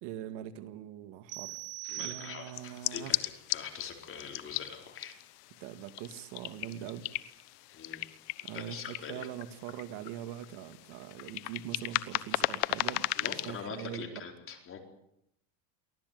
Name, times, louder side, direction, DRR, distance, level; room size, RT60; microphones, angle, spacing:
voice 1, 0.0-1.6 1.9-3.2 5.6-7.1 8.4-14.2, right 11 dB, 60° right, 11 dB, 2.0 m, -42 dB
sound 1, 1.3-2.8, right 20 dB, 40° right, 1.2 m, -42 dB
voice 2, 1.8-5.2 7.7-8.0 8.5-9.3 13.2-14.8, left 6 dB, 25° left, 4 dB, 4.2 m, -43 dB
sound 2, 2.5-13.6, left 20 dB, 75° left, 1.3 m, -37 dB
24.0 x 16.5 x 9.4 m, 0.77 s
supercardioid pair, 145°, 47 cm